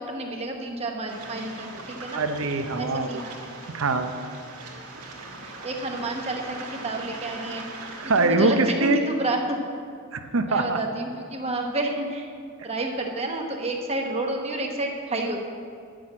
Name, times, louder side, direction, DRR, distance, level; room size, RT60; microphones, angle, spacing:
voice 1, 0.0-2.2 2.8-3.4 5.4-7.7 8.2-9.6 10.4-12.3 12.6-15.5, right 2 dB, 25° right, 2 dB, 1.0 m, -30 dB
Waves surf, 1.1-8.3, right 3 dB, 85° right, 1.6 m, -40 dB
voice 2, 2.1-3.2 3.7-4.1 8.0-9.0 10.1-10.8, right 3 dB, 65° right, 7 dB, 0.7 m, -23 dB
9.9 x 6.3 x 7.5 m, 2.2 s
head